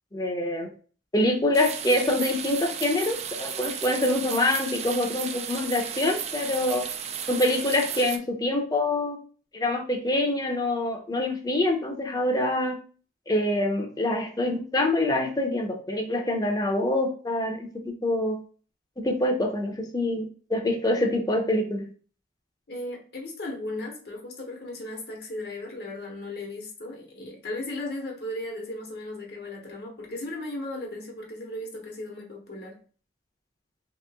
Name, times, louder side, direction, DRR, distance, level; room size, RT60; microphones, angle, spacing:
voice 1, 0.1-0.7 1.1-6.9 7.3-9.2 9.5-12.8 13.3-18.4 19.0-21.9, left 1 dB, 20° left, 2 dB, 0.7 m, -25 dB
sound 1, 1.5-8.2, right 8 dB, 35° right, 0.3 m, -34 dB
voice 2, 22.7-32.8, left 1 dB, 60° left, 0 dB, 1.0 m, -36 dB
3.1 x 3.0 x 3.4 m, 0.40 s
head